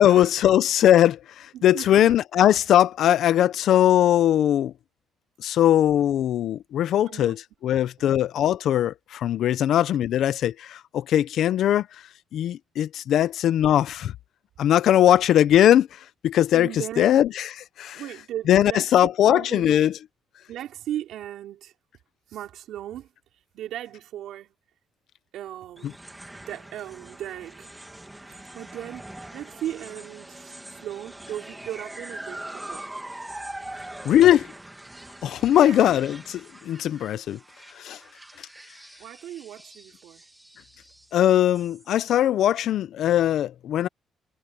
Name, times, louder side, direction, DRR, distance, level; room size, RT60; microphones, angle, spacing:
voice 1, 0.0-4.7 5.4-12.0 12.3-14.1 14.6-18.0 18.5-20.0 25.8-25.9 34.0-34.5 35.2-37.4 37.7-38.0 38.4-38.5 41.1-43.9, left 11 dB, 75° left, 0.7 m, -20 dB
voice 2, 1.5-2.1 7.1-7.4 7.7-7.8 16.5-17.1 17.9-18.9 19.2-19.8 20.5-21.7 22.3-23.1 23.5-24.5 25.3-25.9 26.5-27.7 28.2-32.9 35.6-35.8 39.0-40.2, right 12 dB, 80° right, 4.5 m, -37 dB
sound 1, 25.8-42.2, right 1 dB, 10° right, 2.2 m, -43 dB
cardioid pair, 90°, 0 cm